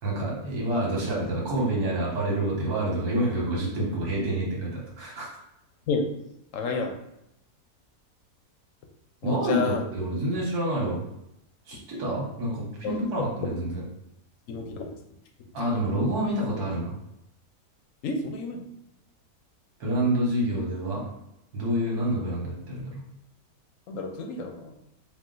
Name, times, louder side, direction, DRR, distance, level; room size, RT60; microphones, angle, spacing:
voice 1, 0.0-5.3 9.2-11.0 11.7-13.8 15.5-16.9 19.8-21.0 21.5-23.0, right 1 dB, 80° right, -3 dB, 1.7 m, -27 dB
voice 2, 6.5-6.9 9.2-9.8 12.8-13.2 14.5-15.0 18.0-18.6 23.9-24.7, left 4 dB, 65° left, 4 dB, 0.9 m, -30 dB
4.8 x 2.3 x 3.8 m, 0.82 s
omnidirectional pair, 1.6 m